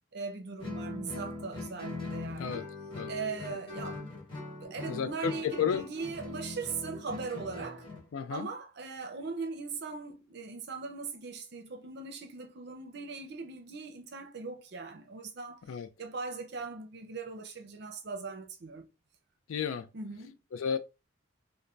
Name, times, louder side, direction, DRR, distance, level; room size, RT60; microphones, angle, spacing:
voice 1, 0.1-2.7 3.1-4.1 4.6-7.9 8.3-15.6 16.0-18.9 19.9-20.4, right 4 dB, 55° right, 0.5 m, -40 dB
Guitar, 0.6-8.1, left 2 dB, 25° left, 1.0 m, -41 dB
voice 2, 4.9-5.8 8.1-8.5 15.7-15.9 19.5-19.9 20.5-20.8, left 7 dB, 85° left, 0.4 m, -32 dB
2.5 x 2.1 x 3.1 m
head